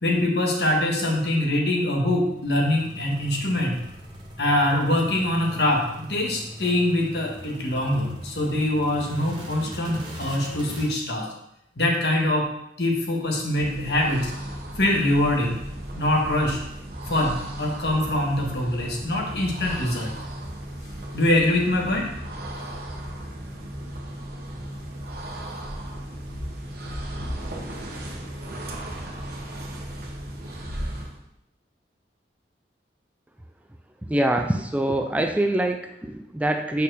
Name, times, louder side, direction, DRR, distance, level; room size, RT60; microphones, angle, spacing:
voice 1, 0.0-3.8 4.4-11.3 11.8-12.5 12.8-14.3 14.8-15.6 15.9-16.6 17.1-20.1 21.1-22.0, left 1 dB, 70° left, 0 dB, 1.6 m, -23 dB
sound 1, 2.1-10.9, right 1 dB, 25° right, 1.2 m, -40 dB
sound 2, 13.4-31.2, right 1 dB, 55° right, 1.2 m, -35 dB
voice 2, 34.1-36.8, right 1 dB, 10° right, 4 dB, 0.3 m, -24 dB
5.4 x 4.4 x 6.2 m, 0.80 s
head